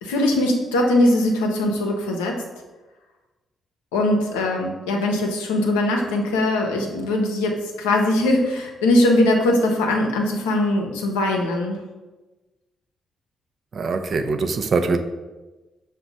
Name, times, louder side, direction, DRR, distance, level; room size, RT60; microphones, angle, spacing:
voice 1, 0.0-2.4 3.9-11.8, left 1 dB, 90° left, 0.6 m, -21 dB
voice 2, 13.7-15.0, right 4 dB, 55° right, 0.4 m, -22 dB
5.9 x 2.2 x 3.9 m
hypercardioid pair, 50°, 0 cm